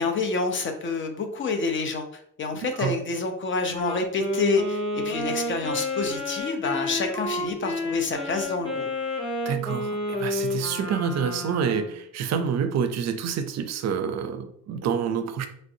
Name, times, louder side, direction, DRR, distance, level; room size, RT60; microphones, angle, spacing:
voice 1, 0.0-8.9, left 3 dB, 40° left, 5 dB, 0.5 m, -28 dB
voice 2, 2.5-3.0 9.5-15.5, right 7 dB, 60° right, 8 dB, 0.4 m, -28 dB
Wind instrument woodwind instrument, 3.7-12.0, left 2 dB, 15° left, 1.0 m, -30 dB
3.2 x 2.5 x 2.7 m, 0.69 s
cardioid pair, 90°, 30 cm